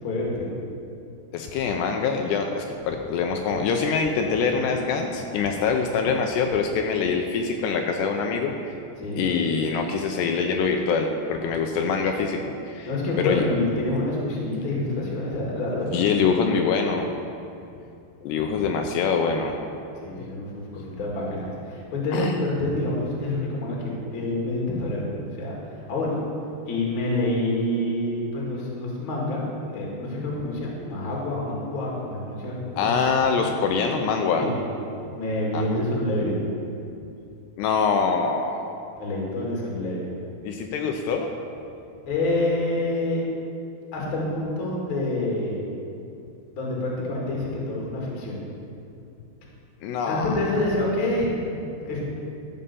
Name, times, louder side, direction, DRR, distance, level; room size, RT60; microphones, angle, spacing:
voice 1, 0.0-0.5 9.0-9.2 12.8-16.2 20.0-26.2 26.7-29.4 29.7-32.5 32.8-32.9 33.3-33.4 34.4-34.5 35.1-36.4 38.9-40.1 42.1-43.2 43.9-45.6 46.6-48.4 50.1-52.0, left 1 dB, 40° left, -3 dB, 2.0 m, -27 dB
voice 2, 1.3-8.8 9.2-12.9 13.2-13.4 15.9-17.1 18.2-19.5 22.1-22.3 32.8-34.5 35.5-35.8 37.6-38.8 40.4-41.3 49.8-50.4, left 5 dB, 80° left, 3 dB, 2.7 m, -24 dB
13.0 x 5.5 x 6.8 m, 2.6 s
omnidirectional pair, 5.0 m